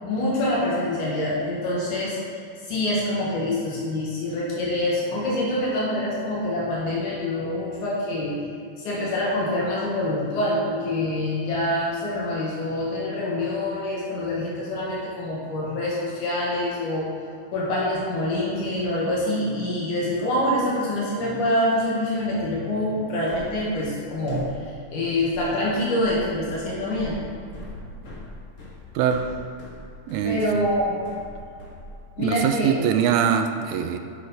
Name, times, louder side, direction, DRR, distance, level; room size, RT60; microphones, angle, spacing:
voice 1, 0.0-2.2 2.6-8.4 8.8-17.1 17.5-27.2 30.2-31.0 32.2-32.7, left 1 dB, 75° left, -6 dB, 2.9 m, -25 dB
sound 1, 23.3-32.4, left 1 dB, 60° left, 0.8 m, -42 dB
voice 2, 30.1-30.6 32.2-34.0, right 8 dB, 80° right, 7 dB, 1.7 m, -23 dB
8.6 x 6.5 x 5.3 m, 2.4 s
omnidirectional pair, 3.6 m